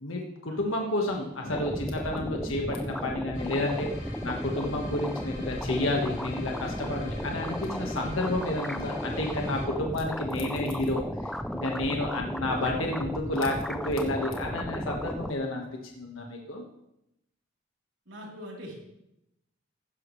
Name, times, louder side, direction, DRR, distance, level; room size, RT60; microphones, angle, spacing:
voice 1, 0.0-11.0 11.5-15.7 16.0-16.6, left 1 dB, 90° left, 0 dB, 1.6 m, -30 dB
sound 1, 1.5-15.3, equal, ahead, 0.4 m, -34 dB
sound 2, 3.3-9.7, left 1 dB, 65° left, 3.2 m, -45 dB
voice 2, 18.1-18.7, equal, 70° right, -2 dB, 3.7 m, -42 dB
16.0 x 10.5 x 3.3 m, 0.83 s
head